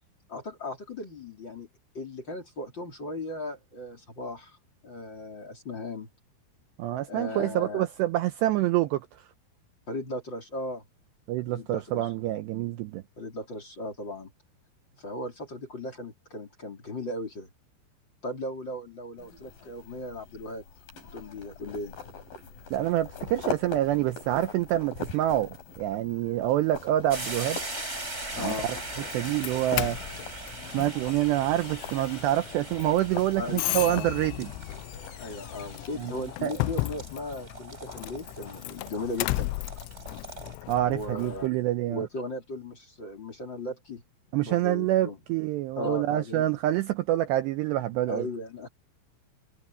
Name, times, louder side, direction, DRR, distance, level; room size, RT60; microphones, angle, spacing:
voice 1, 0.3-1.7 1.9-4.6 4.8-6.1 7.0-7.9 9.9-10.8 11.3-12.1 13.2-14.3 15.0-17.5 18.2-20.6 21.1-22.0 28.4-28.7 33.4-34.1 35.2-39.5 40.9-41.5 41.9-44.0 44.4-45.2 45.8-46.4 48.1-48.7, left 2 dB, 25° left, 3.6 m, -37 dB
voice 2, 6.8-9.2 11.3-13.0 22.7-27.6 28.4-28.8 29.1-30.0 30.7-34.5 36.0-36.6 40.7-42.1 44.3-48.3, right 14 dB, 80° right, 2.6 m, -27 dB
sound 1, 19.2-35.9, left 4 dB, 45° left, 6.6 m, -42 dB
sound 2, 27.1-40.6, right 2 dB, 15° right, 5.3 m, -41 dB
Doorbell, 28.3-41.5, left 21 dB, 85° left, 2.9 m, -36 dB
omnidirectional pair, 5.7 m